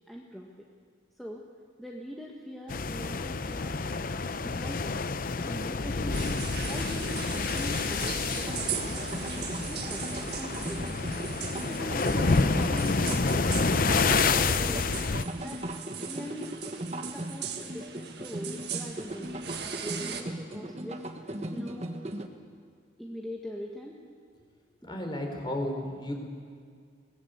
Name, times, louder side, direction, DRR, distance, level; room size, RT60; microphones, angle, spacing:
voice 1, 0.1-0.5 1.2-1.5 1.8-3.8 4.4-5.0 5.4-6.4 6.6-9.3 9.7-11.0 11.7-14.9 15.4-15.6 16.0-16.7 17.1-21.0 21.5-22.1 23.0-24.0, equal, ahead, -2 dB, 1.5 m, -42 dB
sound 1, 2.7-15.2, left 4 dB, 45° left, 0.6 m, -28 dB
sound 2, 6.1-20.2, right 8 dB, 55° right, 1.9 m, -40 dB
sound 3, 8.5-22.3, right 1 dB, 35° right, 1.3 m, -38 dB
voice 2, 24.8-26.1, left 1 dB, 25° left, 2 dB, 3.9 m, -33 dB
23.0 x 19.5 x 8.2 m, 2.1 s
head